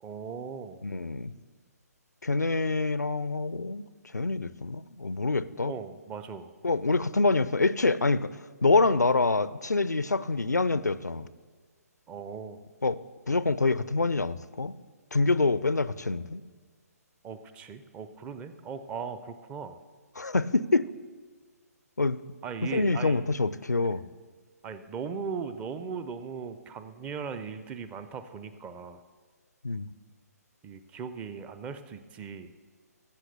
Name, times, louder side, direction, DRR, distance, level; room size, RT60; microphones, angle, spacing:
voice 1, 0.0-0.9 5.6-6.5 12.1-12.6 17.2-19.8 22.4-23.3 24.6-29.0 30.6-32.5, right 6 dB, 15° right, 11 dB, 0.5 m, -38 dB
voice 2, 0.8-1.3 2.2-3.9 4.1-5.7 6.6-8.3 8.6-11.3 12.8-13.0 13.3-14.7 15.1-16.4 20.2-20.9 22.0-22.2 22.7-24.0 29.6-29.9, left 3 dB, 90° left, 17 dB, 0.4 m, -26 dB
15.5 x 5.9 x 6.7 m, 1.5 s
figure-of-eight pair, 135°, 9 cm